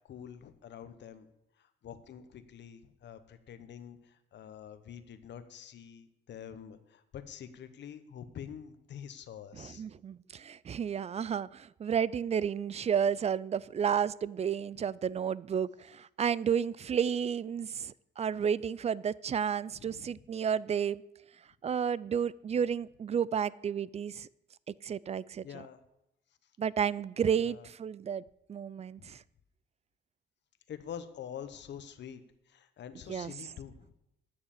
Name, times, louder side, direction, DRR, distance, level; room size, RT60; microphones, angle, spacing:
voice 1, 0.1-1.3 1.6-9.8 14.7-14.8 19.7-20.3 25.4-25.8 27.4-27.7 29.0-29.2 30.7-32.2 32.5-33.9, left 8 dB, 65° left, 11 dB, 1.1 m, -46 dB
voice 2, 9.6-21.0 21.6-24.3 24.8-25.5 26.6-28.2 28.5-29.2 33.1-33.3, right 7 dB, 35° right, 21 dB, 0.3 m, -31 dB
10.0 x 6.6 x 7.3 m, 0.86 s
cardioid pair, 90°, 20 cm